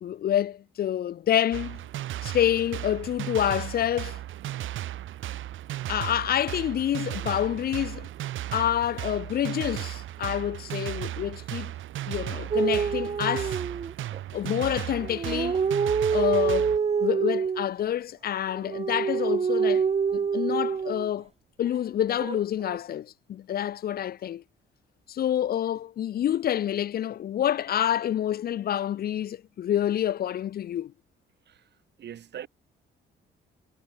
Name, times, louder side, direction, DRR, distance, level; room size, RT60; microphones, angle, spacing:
voice 1, 0.0-1.8 2.2-4.2 5.9-8.1 8.5-11.7 12.1-13.6 14.3-15.6 16.1-19.8 20.1-21.3 21.6-24.4 25.1-30.9, left 10 dB, 50° left, 0.4 m, -27 dB
sound 1, 1.5-16.8, right 13 dB, 80° right, 2.7 m, -35 dB
sound 2, 12.5-14.2 15.0-17.7 18.5-21.1 22.2-22.8, right 6 dB, 30° right, 0.8 m, -26 dB
voice 2, 32.0-32.5, right 9 dB, 60° right, 1.7 m, -40 dB
cardioid pair, 90°, 20 cm